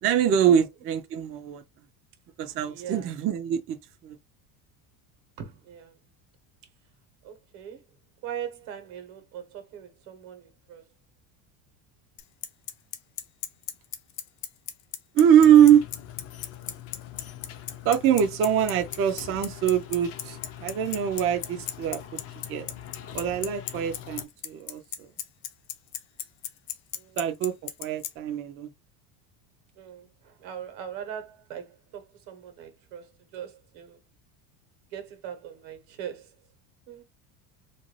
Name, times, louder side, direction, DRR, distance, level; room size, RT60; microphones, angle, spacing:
voice 1, 0.0-1.6 2.4-3.8 4.0-4.2 15.1-15.8 17.8-22.0 22.5-22.7 23.1-25.1 27.2-27.5 27.8-28.7, right 9 dB, 35° right, 0.4 m, -23 dB
voice 2, 2.7-3.1 5.4-6.0 7.2-7.8 8.2-10.9 26.9-27.2 29.8-34.0 34.9-36.3 36.9-37.0, right 9 dB, 75° right, 1.1 m, -41 dB
Bicycle, 12.2-28.1, left 11 dB, 75° left, 0.7 m, -34 dB
sound 1, 15.4-24.2, left 10 dB, 35° left, 0.4 m, -43 dB
2.6 x 2.2 x 3.0 m
supercardioid pair, 125°, 45 cm